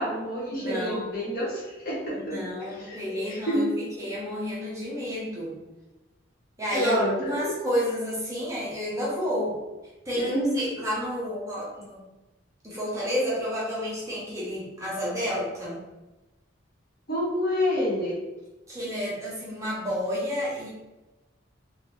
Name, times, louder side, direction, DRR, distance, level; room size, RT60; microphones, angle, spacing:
voice 1, 0.0-3.7 6.7-7.5 10.1-10.6 17.1-18.2, equal, 50° left, -5 dB, 0.9 m, -28 dB
voice 2, 0.5-1.3 2.1-5.6 6.6-9.6 10.1-12.0 12.6-15.8 18.7-20.7, equal, 15° right, -6 dB, 0.5 m, -31 dB
2.5 x 2.1 x 3.0 m, 1.1 s
head